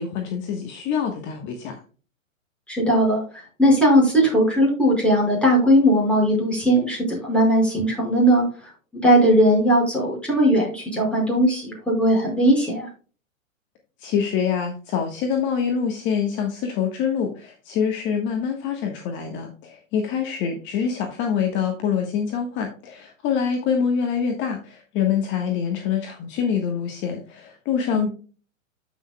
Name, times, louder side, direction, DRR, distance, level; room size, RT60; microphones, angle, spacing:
voice 1, 0.0-1.8 14.0-28.1, left 7 dB, 30° left, 3 dB, 1.3 m, -25 dB
voice 2, 2.7-3.2 3.6-8.4 9.0-12.9 27.9-28.1, equal, 5° left, -4 dB, 5.1 m, -18 dB
13.5 x 6.2 x 2.2 m, 0.37 s
hypercardioid pair, 125°, 40 cm